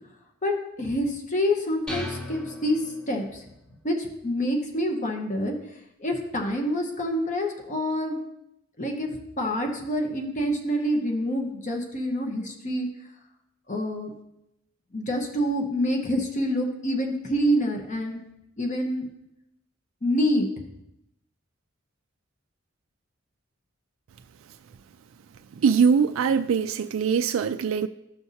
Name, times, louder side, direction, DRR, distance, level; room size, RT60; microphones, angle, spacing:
voice 1, 0.8-3.4 3.8-5.5 6.0-8.2 8.8-9.1 9.4-12.9 13.7-14.1 14.9-18.2 18.6-19.1 20.0-20.5, equal, 40° left, 1.1 m, -27 dB
sound 1, 1.9-3.5, left 1 dB, 5° left, 1.0 m, -37 dB
voice 2, 25.6-27.9, right 6 dB, 75° right, 0.3 m, -22 dB
14.5 x 5.7 x 2.8 m
head